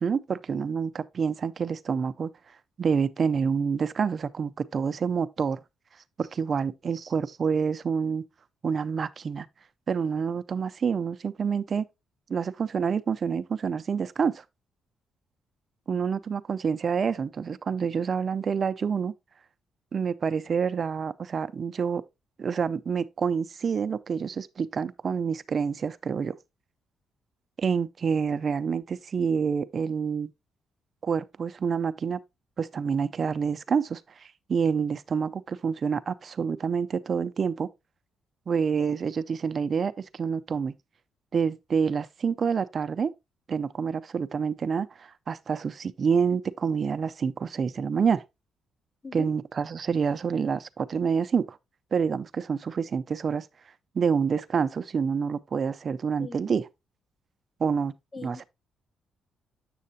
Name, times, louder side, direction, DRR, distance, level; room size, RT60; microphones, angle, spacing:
voice 1, 0.0-2.3 2.8-5.6 6.2-8.2 8.6-9.5 9.9-11.9 12.3-14.4 15.9-19.1 19.9-22.0 22.4-26.3 27.6-30.3 31.0-32.2 32.6-37.7 38.5-40.7 41.3-43.1 43.5-48.2 49.1-51.6 51.9-53.5 53.9-56.6 57.6-57.9 58.2-58.4, right 6 dB, 45° right, 0.4 m, -27 dB
voice 2, 56.2-56.5 58.1-58.4, left 4 dB, 30° left, 0.6 m, -40 dB
7.6 x 6.4 x 2.7 m
cardioid pair, 90°, 0 cm